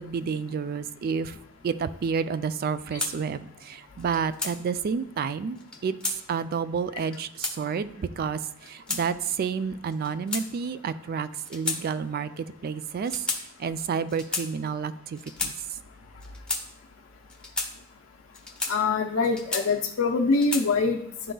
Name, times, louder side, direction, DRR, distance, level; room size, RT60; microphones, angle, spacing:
voice 1, 0.0-1.4 1.6-15.5, right 6 dB, 45° right, 13 dB, 0.3 m, -30 dB
sound 1, 3.0-3.1 4.0-4.5 5.6-6.2 7.0-7.6 8.4-9.0 9.9-10.8 11.4-11.8 12.1-12.3 13.0-13.4 14.1-14.5 15.1-15.5 16.2-16.6 17.3-17.7 18.3-18.7 19.2-19.9 20.3-20.7, left 3 dB, 5° left, 0.7 m, -32 dB
voice 2, 18.7-21.3, left 4 dB, 75° left, 1 dB, 0.5 m, -24 dB
11.0 x 3.8 x 2.2 m, 0.76 s
head